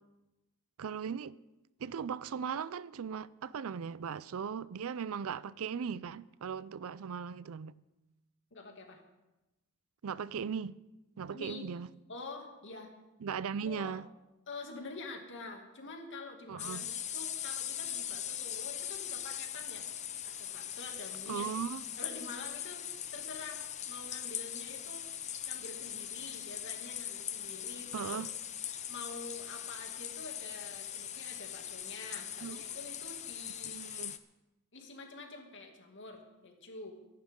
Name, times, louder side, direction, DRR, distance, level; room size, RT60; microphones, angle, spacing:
voice 1, 0.8-1.4 1.8-7.7 10.0-10.8 11.2-11.9 13.2-14.0 16.5-16.9 21.3-21.8 27.9-28.3 32.4-32.6 33.6-34.2, right 7 dB, 65° right, 0.4 m, -38 dB
voice 2, 8.5-9.0 11.3-11.7 12.1-12.9 13.6-13.9 14.5-19.9 20.2-21.5 22.0-25.1 25.5-28.2 28.9-33.8 34.7-37.0, left 3 dB, 55° left, 2.5 m, -47 dB
sound 1, 16.6-34.2, left 10 dB, 30° left, 0.7 m, -41 dB
24.5 x 11.5 x 3.8 m
head